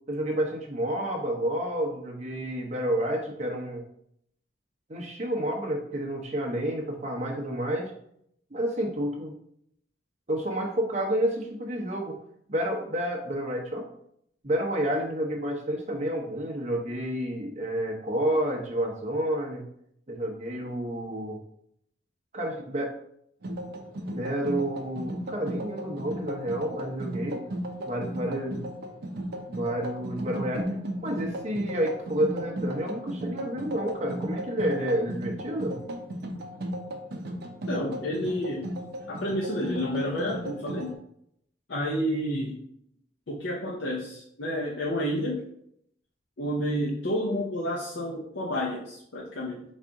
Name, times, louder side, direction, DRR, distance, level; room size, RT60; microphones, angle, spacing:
voice 1, 0.1-3.8 4.9-7.9 8.5-9.3 10.3-12.2 12.5-13.9 14.4-19.6 20.1-21.4 22.3-22.9 24.1-27.4 27.8-28.7 29.5-30.7 31.0-35.8, right 1 dB, 40° right, 1 dB, 0.9 m, -30 dB
sound 1, 23.4-40.9, equal, 60° right, 0.6 m, -35 dB
voice 2, 37.7-38.7 39.1-41.0 41.7-42.6 43.3-45.4 46.4-49.6, equal, 75° left, -4 dB, 0.7 m, -30 dB
4.1 x 2.6 x 4.7 m, 0.72 s
head